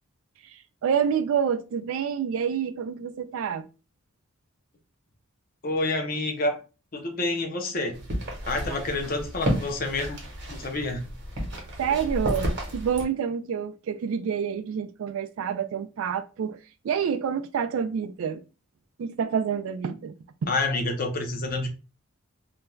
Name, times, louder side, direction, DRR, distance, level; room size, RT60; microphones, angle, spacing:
voice 1, 0.8-3.6 8.7-8.8 11.8-16.6 16.8-18.4 19.0-20.2 20.4-20.5, right 7 dB, 65° right, 0.3 m, -28 dB
voice 2, 5.6-6.6 6.9-8.0 8.5-10.2 10.5-11.0 20.5-21.7, left 2 dB, 40° left, 0.6 m, -28 dB
sound 1, 7.9-13.0, equal, 50° right, 0.9 m, -32 dB
2.4 x 2.2 x 3.0 m
head